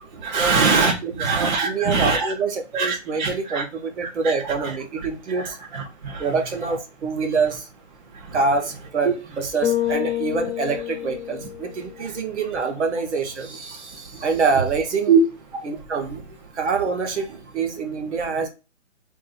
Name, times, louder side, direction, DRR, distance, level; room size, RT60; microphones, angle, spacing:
voice 1, 0.2-2.3 2.7-3.6 4.2-4.3 4.6-4.7 5.3-6.3 9.0-9.1 15.1-15.2, right 5 dB, 35° right, 0.7 m, -22 dB
voice 2, 1.6-5.6 6.2-7.7 8.3-15.1 15.6-16.2 16.5-18.5, right 4 dB, 60° right, 1.1 m, -26 dB
Bass guitar, 9.6-12.0, left 12 dB, 50° left, 0.8 m, -27 dB
2.6 x 2.5 x 4.0 m
hypercardioid pair, 145°, 38 cm